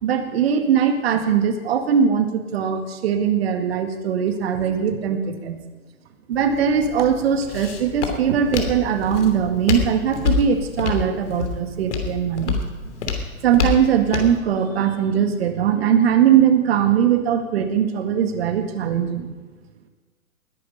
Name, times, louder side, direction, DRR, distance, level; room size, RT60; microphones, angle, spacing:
voice 1, 0.0-5.6 6.3-12.6 12.8-12.9 13.4-19.3, right 8 dB, 45° right, 7 dB, 2.0 m, -20 dB
Walk footsteps, 6.3-14.4, left 5 dB, 55° left, 3.1 m, -28 dB
20.0 x 10.5 x 5.4 m, 1.3 s
figure-of-eight pair, 120°, 42 cm